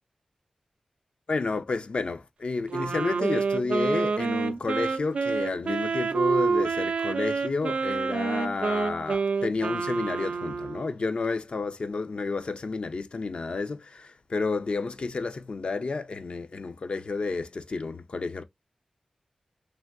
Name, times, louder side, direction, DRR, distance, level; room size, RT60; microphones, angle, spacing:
voice 1, 1.3-18.4, left 3 dB, 55° left, 0.5 m, -31 dB
Wind instrument woodwind instrument, 2.7-10.9, right 4 dB, 70° right, 0.4 m, -28 dB
3.4 x 2.6 x 2.4 m
wide cardioid pair, 90°, 2 cm